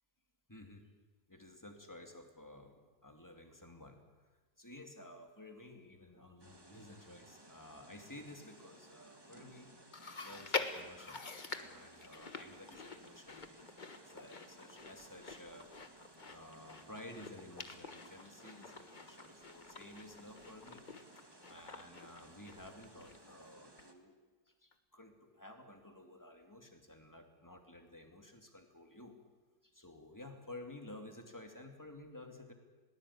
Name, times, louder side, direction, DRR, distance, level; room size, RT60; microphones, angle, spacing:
voice 1, 0.5-0.9 1.3-4.2 4.6-9.8 10.2-11.2 11.5-13.5 14.0-15.7 16.2-20.8 21.2-24.2 24.5-29.1 29.6-32.5, left 1 dB, 10° left, 5 dB, 2.5 m, -53 dB
sound 1, 6.4-23.9, right 1 dB, 15° right, 1.8 m, -60 dB
Chewing mastication, 9.9-23.5 23.8-23.9 24.7-24.8, left 4 dB, 30° left, 1.4 m, -46 dB
21.5 x 18.5 x 8.6 m, 1.3 s
omnidirectional pair, 1.7 m